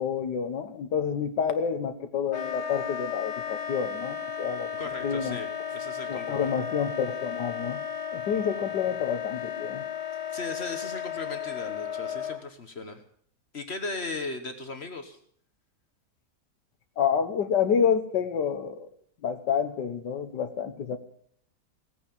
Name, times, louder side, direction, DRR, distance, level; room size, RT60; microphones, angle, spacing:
voice 1, 0.0-4.7 5.0-5.4 6.1-7.8 8.1-9.8 17.0-18.9 19.2-21.0, left 7 dB, 90° left, 9 dB, 1.7 m, -28 dB
Wind instrument woodwind instrument, 2.3-12.4, left 8 dB, 70° left, 1.6 m, -34 dB
voice 2, 4.8-6.6 10.3-13.0 13.5-15.2, left 3 dB, 40° left, 7 dB, 1.3 m, -37 dB
17.0 x 9.0 x 7.1 m, 0.64 s
omnidirectional pair, 1.8 m